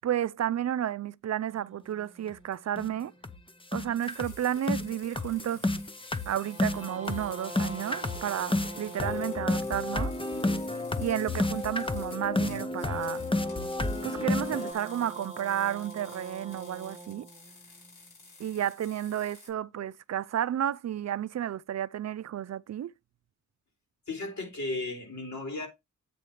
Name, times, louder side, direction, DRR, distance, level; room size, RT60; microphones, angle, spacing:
voice 1, 0.0-3.1 3.7-5.6 6.3-10.1 11.0-13.2 14.0-17.3 18.4-22.9, right 10 dB, 60° right, 0.5 m, -32 dB
sound 1, 1.5-3.9 6.1-10.3 12.4-18.6, right 2 dB, 25° right, 1.4 m, -47 dB
sound 2, 2.3-2.4 2.8-2.9 3.2-3.4 3.7-14.7, left 2 dB, 15° left, 0.9 m, -31 dB
sound 3, 4.0-19.5, left 3 dB, 80° left, 5.1 m, -53 dB
voice 2, 24.1-25.7, left 2 dB, 65° left, 3.9 m, -35 dB
8.5 x 3.1 x 6.5 m
cardioid pair, 50°, 31 cm